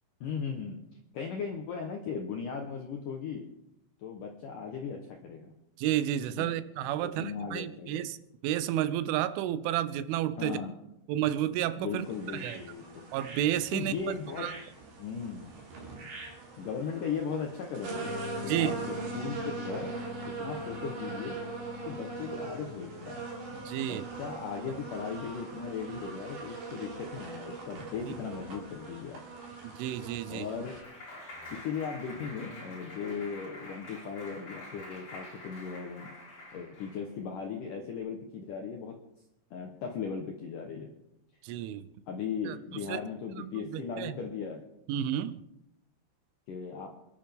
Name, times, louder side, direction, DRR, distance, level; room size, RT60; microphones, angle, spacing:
voice 1, 0.2-0.8 1.1-3.5 4.0-5.5 6.3-6.5 7.0-8.1 10.4-10.8 11.8-13.1 13.7-14.5 15.0-15.5 16.6-18.1 18.4-19.9 20.3-21.4 21.8-23.2 23.8-29.2 30.3-30.8 31.5-36.1 36.5-39.0 39.5-40.9 42.1-44.6 46.5-46.9, left 6 dB, 75° left, 2 dB, 1.9 m, -37 dB
voice 2, 5.8-8.2 8.4-10.6 11.1-12.0 12.3-12.6 13.1-13.9 14.4-14.5 18.4-18.7 23.6-24.1 24.7-24.8 28.1-28.2 29.6-30.5 41.4-41.9 42.4-43.0 43.4-44.2 44.9-45.4, right 12 dB, 90° right, 13 dB, 3.2 m, -31 dB
sound 1, 12.0-30.8, right 4 dB, 60° right, 5.0 m, -41 dB
sound 2, 17.9-25.6, left 8 dB, 60° left, 4.5 m, -45 dB
Clapping, 29.8-37.1, left 1 dB, 35° left, 5.9 m, -46 dB
26.5 x 11.0 x 3.6 m, 0.86 s
omnidirectional pair, 5.4 m